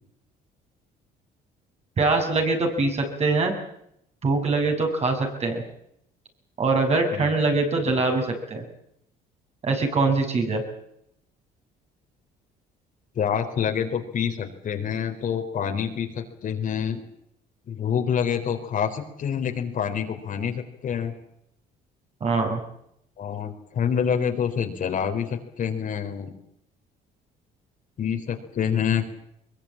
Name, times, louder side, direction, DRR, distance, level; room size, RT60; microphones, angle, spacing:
voice 1, 2.0-3.5 4.2-5.6 6.6-8.6 9.6-10.6 22.2-22.6, right 3 dB, 40° right, 3 dB, 6.9 m, -23 dB
voice 2, 7.1-7.4 13.1-17.0 17.7-21.1 23.2-26.3 28.0-29.1, left 8 dB, 50° left, 5 dB, 4.1 m, -27 dB
22.5 x 22.0 x 8.9 m, 0.76 s
cardioid pair, 110°, 17 cm